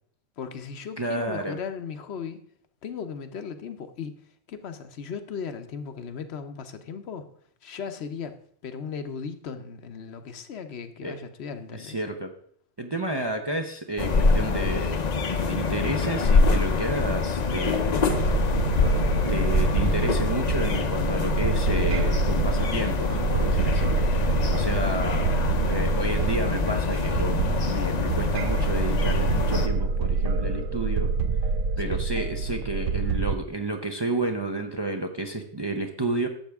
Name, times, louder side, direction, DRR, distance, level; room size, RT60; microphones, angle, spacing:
voice 1, 0.4-2.4 2.8-7.3 7.6-8.4 8.6-12.0 31.9-32.1, left 6 dB, 65° left, 9 dB, 1.0 m, -37 dB
voice 2, 1.0-1.6 11.0-11.2 11.7-12.3 12.8-15.0 15.4-18.1 19.3-25.4 25.6-31.1 31.8-36.3, right 2 dB, 30° right, 4 dB, 0.6 m, -31 dB
sound 1, 14.0-29.7, left 4 dB, 40° left, 0.7 m, -25 dB
sound 2, 18.1-33.3, right 4 dB, 90° right, 1.0 m, -26 dB
11.5 x 7.5 x 3.5 m, 0.63 s
omnidirectional pair, 1.2 m